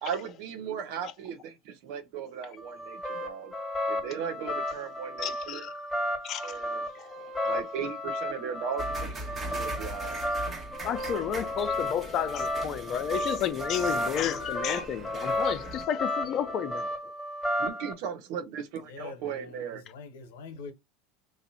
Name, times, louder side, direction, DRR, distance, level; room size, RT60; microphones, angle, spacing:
voice 1, 0.0-3.5 3.9-5.7 6.4-6.9 7.4-9.1 9.5-10.2 17.6-19.8, right 7 dB, 65° right, 0.9 m, -37 dB
sound 1, 2.6-17.9, left 1 dB, 10° left, 1.5 m, -33 dB
voice 2, 5.2-5.7 6.2-6.6 6.9-7.1 9.5-9.6 10.8-16.9, left 9 dB, 45° left, 0.6 m, -31 dB
sound 2, 8.8-15.8, right 2 dB, 30° right, 1.3 m, -41 dB
voice 3, 18.8-20.7, left 4 dB, 75° left, 1.0 m, -45 dB
3.2 x 2.5 x 4.1 m
hypercardioid pair, 95°, 0 cm